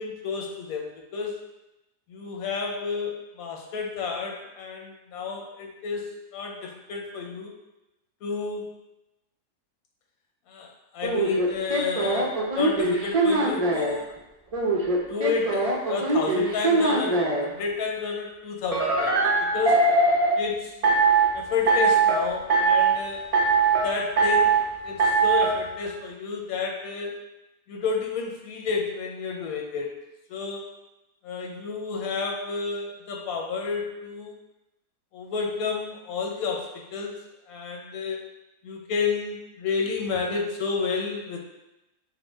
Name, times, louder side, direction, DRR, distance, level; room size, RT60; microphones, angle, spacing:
voice 1, 0.0-1.3 2.1-7.5 8.2-8.7 10.5-14.1 15.1-19.9 20.4-20.9 21.3-23.3 23.8-24.6 24.8-27.2 27.7-29.9 30.3-30.7 31.2-34.4 35.1-37.2 37.5-38.2 38.6-41.4, left 5 dB, 85° left, 1 dB, 1.1 m, -31 dB
sound 1, 11.0-14.0 14.5-17.5 18.7-20.4 20.8-21.3 21.7-22.2 22.5-23.0 23.3-23.9 24.2-24.6 25.0-25.5, right 3 dB, 70° right, 0.3 m, -21 dB
4.9 x 2.1 x 3.4 m, 0.95 s
omnidirectional pair, 1.5 m